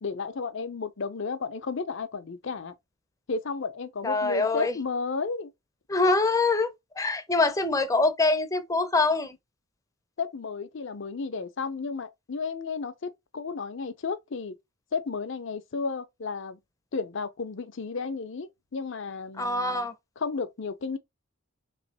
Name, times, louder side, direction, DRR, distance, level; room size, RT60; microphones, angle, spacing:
voice 1, 0.0-2.7 3.3-5.5 10.2-14.6 14.9-16.6 16.9-19.9 20.2-21.0, left 4 dB, 60° left, 0.6 m, -33 dB
voice 2, 4.0-4.7 5.9-9.4 19.4-19.9, left 3 dB, 15° left, 0.6 m, -24 dB
3.4 x 3.1 x 4.0 m
head